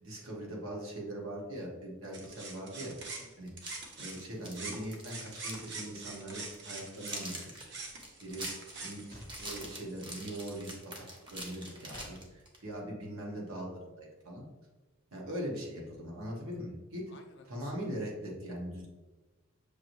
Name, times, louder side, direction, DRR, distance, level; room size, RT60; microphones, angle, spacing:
voice 1, 0.0-2.9 3.4-3.5 4.0-7.7 8.2-8.4 8.8-14.4 15.1-17.0 17.5-18.9, right 1 dB, 80° right, -2 dB, 1.2 m, -41 dB
sound 1, 2.1-4.2 4.5-10.8, right 3 dB, 55° right, 0.8 m, -45 dB
voice 2, 3.2-3.5 8.3-8.6 17.1-18.0, left 2 dB, 55° left, 5 dB, 0.6 m, -59 dB
sound 2, 3.5-5.7 6.0-6.1 6.5-12.6, right 1 dB, 25° right, 0.8 m, -45 dB
sound 3, 9.1-9.7 11.9-12.2, left 1 dB, 20° left, 0.7 m, -49 dB
6.5 x 2.6 x 3.0 m, 1.2 s
head